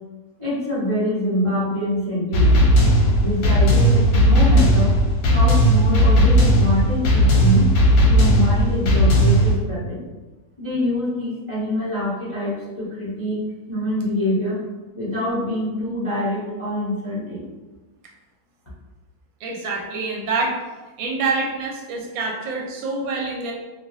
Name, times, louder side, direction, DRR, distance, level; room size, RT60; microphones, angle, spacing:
voice 1, 0.4-2.6 3.2-4.9 5.3-7.7 8.1-10.0 10.6-13.4 13.7-14.6 14.9-17.5, left 1 dB, 50° left, -11 dB, 0.3 m, -25 dB
sound 1, 2.3-9.5, equal, 65° left, 0.9 m, -16 dB
voice 2, 19.4-20.6 21.0-23.5, right 3 dB, 85° right, -1 dB, 1.4 m, -26 dB
3.1 x 2.2 x 2.5 m, 1.2 s
omnidirectional pair, 2.0 m